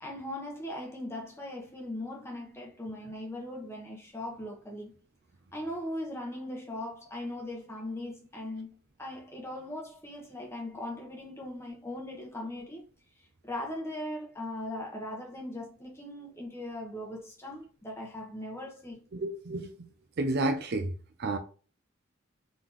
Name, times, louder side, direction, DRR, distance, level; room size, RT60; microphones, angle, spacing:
voice 1, 0.0-4.9 5.5-12.8 13.4-19.0, left 1 dB, 10° left, 1.2 m, -39 dB
voice 2, 19.1-19.9 20.2-20.9 21.2-21.4, right 2 dB, 50° right, 0.5 m, -30 dB
3.8 x 3.7 x 3.0 m
head